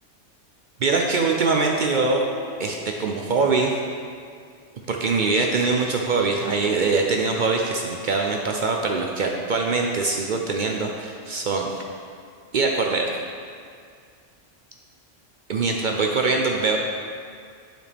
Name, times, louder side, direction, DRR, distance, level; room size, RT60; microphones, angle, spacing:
voice 1, 0.8-2.2 2.6-3.7 4.9-11.8 12.5-13.1 15.5-16.8, right 4 dB, 60° right, 1 dB, 0.5 m, -23 dB
sound 1, 1.9-3.7, left 5 dB, 35° left, 0.5 m, -39 dB
11.0 x 4.4 x 3.4 m, 2.2 s
omnidirectional pair, 1.3 m